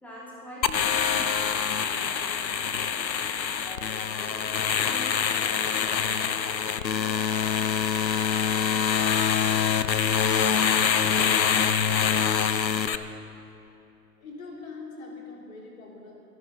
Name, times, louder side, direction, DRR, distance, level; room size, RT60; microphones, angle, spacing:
voice 1, 0.0-1.4 1.7-3.0 3.6-3.9 4.2-7.7, equal, 5° left, -8 dB, 2.9 m, -45 dB
sound 1, 0.6-13.0, left 7 dB, 90° left, 0.8 m, -25 dB
voice 2, 14.2-16.2, left 3 dB, 55° left, -2 dB, 3.4 m, -42 dB
25.5 x 10.5 x 4.1 m, 2.9 s
figure-of-eight pair, 125°, 50 cm